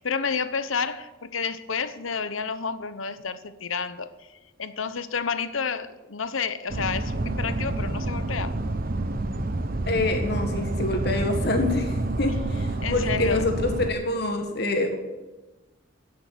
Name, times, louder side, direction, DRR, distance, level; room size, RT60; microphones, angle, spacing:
voice 1, 0.0-4.3 4.6-8.5 12.8-13.5, left 5 dB, 85° left, 13 dB, 1.0 m, -30 dB
sound 1, 6.7-13.9, right 2 dB, 45° right, 0.9 m, -28 dB
voice 2, 9.9-15.0, left 2 dB, 55° left, 4 dB, 1.7 m, -26 dB
16.0 x 6.8 x 10.0 m, 1.1 s
head